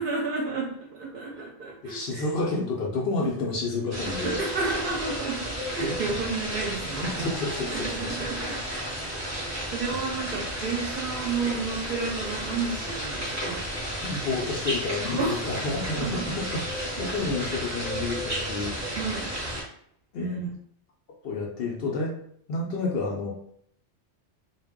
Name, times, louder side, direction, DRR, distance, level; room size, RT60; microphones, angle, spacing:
voice 1, 0.0-2.3 4.0-7.3 7.7-9.1 9.4-13.6 15.0-15.4 16.0-16.3 17.0-17.3 19.0-19.3 20.2-20.5, right 4 dB, 55° right, -2 dB, 0.7 m, -32 dB
voice 2, 1.8-4.4 7.0-8.1 14.0-18.8 20.1-20.4 21.2-22.1 22.5-23.3, left 3 dB, 65° left, -1 dB, 0.7 m, -30 dB
sound 1, 3.9-19.6, equal, 15° right, 0.7 m, -33 dB
sound 2, 6.6-16.1, left 2 dB, 35° left, 0.3 m, -47 dB
2.2 x 2.0 x 3.5 m, 0.65 s
omnidirectional pair, 1.2 m